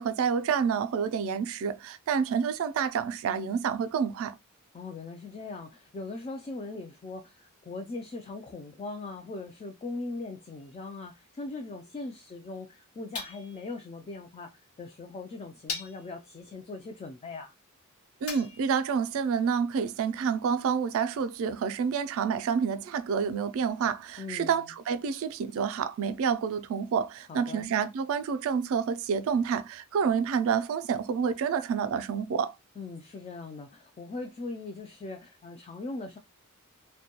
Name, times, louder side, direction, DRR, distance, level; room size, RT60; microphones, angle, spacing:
voice 1, 0.0-4.3 18.2-32.5, right 6 dB, 65° right, 0.3 m, -28 dB
voice 2, 4.7-14.5 14.8-17.5 24.2-24.7 27.3-27.6 32.8-36.2, left 3 dB, 30° left, 0.3 m, -40 dB
sound 1, 10.6-10.7 13.1-13.7 14.8-14.9 15.7-16.2 18.3-18.8, left 4 dB, 70° left, 0.8 m, -39 dB
2.2 x 2.1 x 2.8 m
head